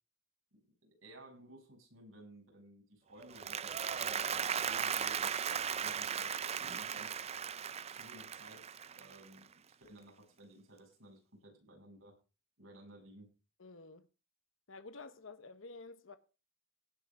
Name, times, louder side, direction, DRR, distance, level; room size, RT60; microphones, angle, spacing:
voice 1, 0.5-6.4 6.7-7.2 7.9-9.5 9.9-12.2 12.6-13.3, right 1 dB, 80° right, 7.3 m, -56 dB
Applause, 3.2-9.5, right 7 dB, 30° right, 0.5 m, -37 dB
voice 2, 13.6-14.1 14.7-16.2, left 3 dB, 75° left, 1.1 m, -50 dB
17.5 x 6.0 x 5.0 m
head